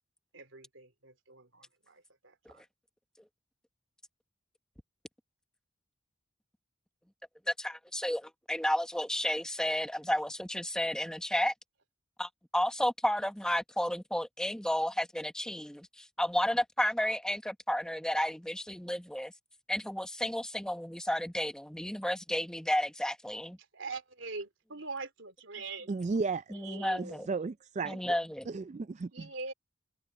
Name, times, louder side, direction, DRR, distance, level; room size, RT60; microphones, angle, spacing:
voice 1, 0.3-2.6 23.6-25.9 26.5-27.3 27.9-28.2 29.1-29.5, right 3 dB, 80° right, 3.0 m, -43 dB
voice 2, 7.5-11.5 12.2-19.3 19.7-23.6 26.5-27.3 27.8-28.5, left 1 dB, 5° left, 0.9 m, -32 dB
voice 3, 25.9-26.5 27.0-28.1 28.5-29.3, right 4 dB, 35° right, 0.3 m, -34 dB
head